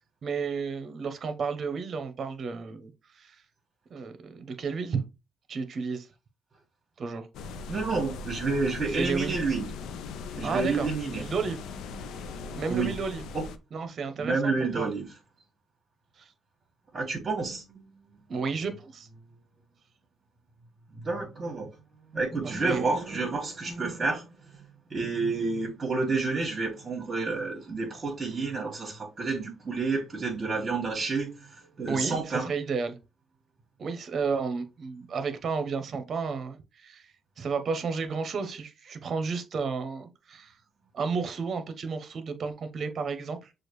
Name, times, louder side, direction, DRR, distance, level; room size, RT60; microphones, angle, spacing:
voice 1, 0.2-3.4 3.9-5.0 5.5-6.1 7.0-7.3 8.9-9.3 10.4-10.9 11.1-11.6 12.6-13.2 13.7-14.9 18.3-19.1 22.4-22.9 31.9-33.0 33.8-37.0 37.4-40.5 40.9-43.5, right 5 dB, 55° right, 0.9 m, -32 dB
sound 1, 7.3-13.6, left 4 dB, 85° left, 0.5 m, -39 dB
voice 2, 7.7-9.7 10.3-11.2 12.7-12.9 13.3-13.4 14.2-15.1 16.9-17.8 18.1-18.2 21.0-21.7 22.1-24.2 24.9-32.5, right 4 dB, 35° right, 1.7 m, -29 dB
6.3 x 2.5 x 3.1 m
cardioid pair, 90°, 0 cm